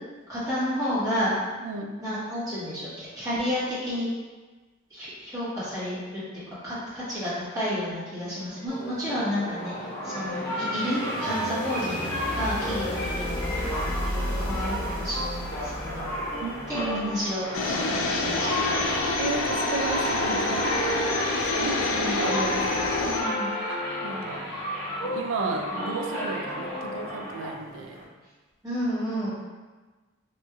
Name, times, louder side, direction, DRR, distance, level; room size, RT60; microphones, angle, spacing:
voice 1, 0.3-1.3 2.0-4.1 4.9-6.2 6.6-9.7 10.0-13.4 13.7-16.1 16.7-19.2 22.0-22.3 23.0-23.5 28.6-29.3, equal, 15° right, -12 dB, 1.3 m, -31 dB
voice 2, 1.6-1.9 16.4-17.1 19.2-20.9 21.4-23.2 23.7-24.5 25.0-28.0, right 3 dB, 70° right, 3 dB, 0.4 m, -33 dB
sound 1, 8.5-17.3, equal, 55° left, 0.8 m, -35 dB
sound 2, 8.7-28.0, equal, 15° left, 0.9 m, -32 dB
sound 3, 17.5-23.2, left 3 dB, 80° left, 0.4 m, -27 dB
3.1 x 3.0 x 2.3 m, 1.3 s
head